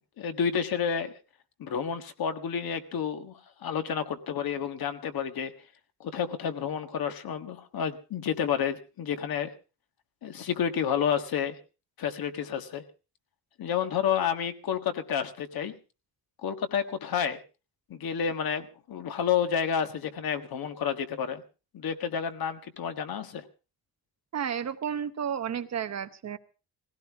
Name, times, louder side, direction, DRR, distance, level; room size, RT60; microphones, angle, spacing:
voice 1, 0.2-1.1 1.6-5.5 6.0-9.5 10.2-11.6 12.0-12.8 13.6-15.8 16.4-17.4 17.9-21.4 21.7-23.4, left 8 dB, 70° left, 8 dB, 1.6 m, -30 dB
voice 2, 24.3-26.4, right 8 dB, 45° right, 10 dB, 0.9 m, -32 dB
19.5 x 16.5 x 3.5 m, 0.33 s
wide cardioid pair, 175°, 37 cm